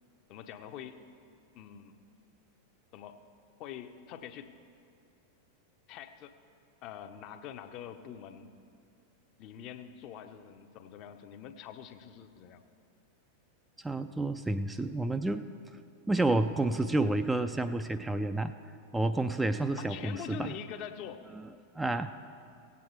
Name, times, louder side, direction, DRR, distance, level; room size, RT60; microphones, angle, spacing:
voice 1, 0.3-1.0 1.5-2.0 2.9-3.2 3.6-4.5 5.9-6.3 6.8-8.5 9.4-12.6 19.8-21.2, left 9 dB, 40° left, 8 dB, 0.7 m, -44 dB
voice 2, 13.8-15.4 16.1-18.5 18.9-20.5 21.8-22.1, right 2 dB, 10° right, 9 dB, 0.3 m, -30 dB
16.5 x 8.4 x 4.4 m, 2.4 s
figure-of-eight pair, 90°, 0 cm